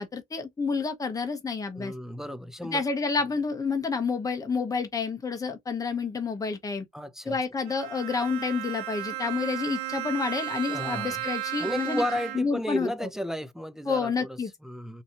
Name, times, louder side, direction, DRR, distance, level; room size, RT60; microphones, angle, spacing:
voice 1, 0.0-1.9 2.6-6.8 7.2-12.0 12.3-13.1 13.9-14.5, left 5 dB, 20° left, 1.0 m, -29 dB
voice 2, 1.7-2.8 6.9-7.4 10.7-11.2 11.6-15.0, equal, 5° right, 0.4 m, -33 dB
Bowed string instrument, 7.6-12.7, right 14 dB, 80° right, 0.6 m, -35 dB
3.9 x 2.8 x 2.9 m
cardioid pair, 110°, 17 cm